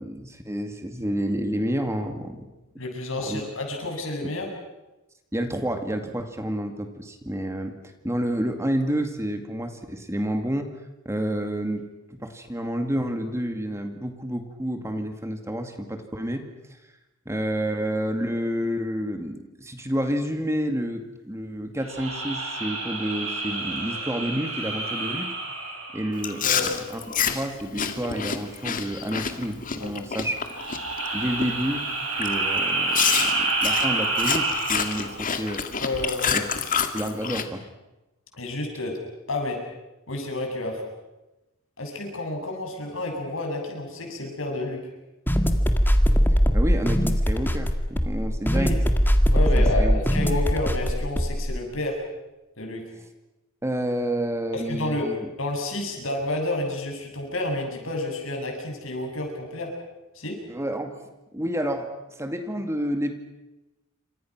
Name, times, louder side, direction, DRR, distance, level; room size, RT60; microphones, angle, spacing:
voice 1, 0.0-2.5 3.2-3.4 5.3-7.7 8.0-10.7 11.1-16.4 17.3-25.3 25.9-27.0 27.3-30.4 31.1-31.8 32.1-35.6 36.3-36.4 36.9-37.6 46.5-48.8 49.5-50.0 53.6-55.3 60.5-61.0 61.3-61.9 62.2-63.2, equal, 15° right, 6 dB, 2.2 m, -29 dB
voice 2, 2.8-4.5 26.4-26.7 29.8-29.9 35.8-36.4 38.3-39.0 39.3-39.6 40.1-40.8 41.8-44.8 48.5-48.8 49.3-52.0 52.6-52.9 54.5-55.1 55.4-59.7 60.2-60.4, left 2 dB, 70° left, 2 dB, 7.4 m, -30 dB
sound 1, 21.8-26.6 30.4-35.1, right 2 dB, 70° right, 7.6 m, -28 dB
Chewing mastication, 26.2-31.1 31.4-31.7 32.2-32.3 32.9-37.5, left 7 dB, 40° left, 2.1 m, -28 dB
sound 2, 45.3-51.6, equal, 10° left, 1.9 m, -21 dB
28.5 x 26.0 x 6.2 m, 1.0 s
head